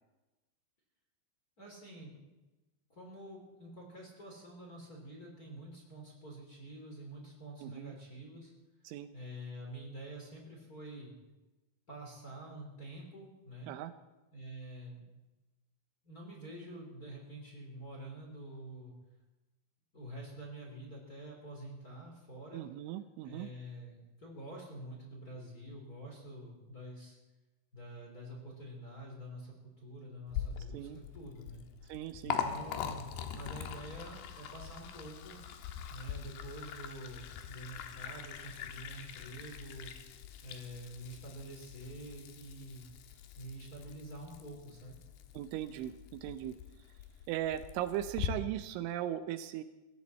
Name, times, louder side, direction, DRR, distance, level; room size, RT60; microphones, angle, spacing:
voice 1, 1.6-2.2 2.9-8.5 9.1-11.1 11.9-13.7 14.3-15.1 16.0-18.9 19.9-22.6 23.2-27.2 27.7-31.6 32.2-35.4 35.9-39.9 40.4-42.9 43.4-45.0, right 1 dB, 25° left, -2 dB, 2.8 m, -47 dB
voice 2, 7.6-7.9 8.9-9.1 13.7-13.9 22.5-23.5 30.7-31.0 31.9-32.4 45.3-46.6 47.3-49.6, right 12 dB, 80° right, 11 dB, 3.0 m, -38 dB
Liquid, 30.3-48.3, left 9 dB, 70° left, 2.7 m, -43 dB
20.5 x 16.0 x 4.2 m, 1.1 s
omnidirectional pair, 5.6 m